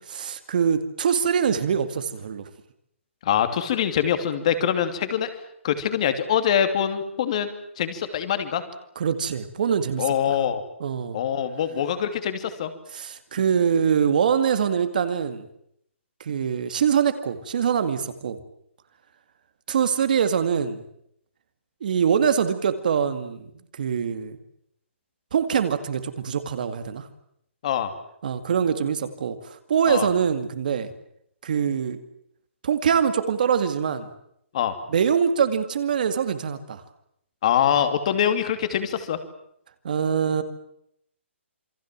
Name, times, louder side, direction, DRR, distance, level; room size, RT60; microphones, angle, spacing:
voice 1, 0.1-2.5 9.0-10.3 10.8-11.2 12.9-15.4 16.2-18.4 19.7-20.8 21.8-24.4 25.3-27.1 28.2-30.9 31.4-32.0 32.6-34.1 34.9-36.8 39.8-40.4, right 7 dB, 40° right, 10 dB, 2.3 m, -24 dB
voice 2, 3.2-5.3 5.6-7.5 7.8-8.6 10.0-10.6 11.1-12.7 27.6-27.9 29.9-30.1 34.5-34.7 37.4-39.2, left 9 dB, 30° left, 9 dB, 2.7 m, -24 dB
28.0 x 23.5 x 7.6 m, 0.73 s
hypercardioid pair, 175°, 7 cm